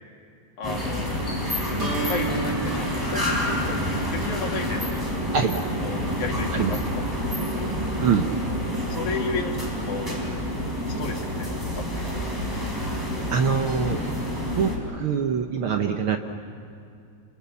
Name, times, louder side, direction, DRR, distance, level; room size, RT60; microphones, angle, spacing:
voice 1, 0.6-1.2 1.7-5.0 5.8-7.5 8.9-10.2 11.0-12.3, left 4 dB, 80° left, 1 dB, 3.8 m, -34 dB
sound 1, 0.6-14.8, equal, 5° right, 4.6 m, -28 dB
sound 2, 1.8-7.8, right 3 dB, 85° right, 5.5 m, -35 dB
voice 2, 8.0-8.3 13.3-14.0 14.4-16.2, right 7 dB, 60° right, 5 dB, 1.5 m, -24 dB
27.5 x 26.5 x 7.2 m, 2.5 s
omnidirectional pair, 3.4 m